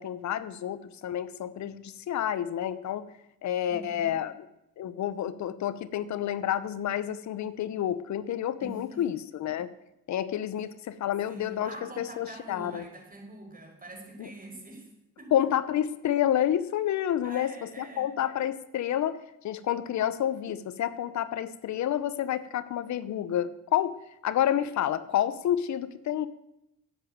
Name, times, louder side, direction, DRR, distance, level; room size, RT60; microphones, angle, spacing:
voice 1, 0.0-3.0 3.4-4.3 4.8-9.7 10.1-12.8 14.2-14.3 15.3-23.9 24.2-26.3, left 11 dB, 65° left, 15 dB, 0.9 m, -29 dB
voice 2, 3.7-4.2 8.6-9.1 11.3-14.9 15.2-15.3 17.2-18.1, right 1 dB, 30° right, 1 dB, 5.3 m, -45 dB
10.0 x 9.2 x 9.1 m, 0.85 s
cardioid pair, 90°, 30 cm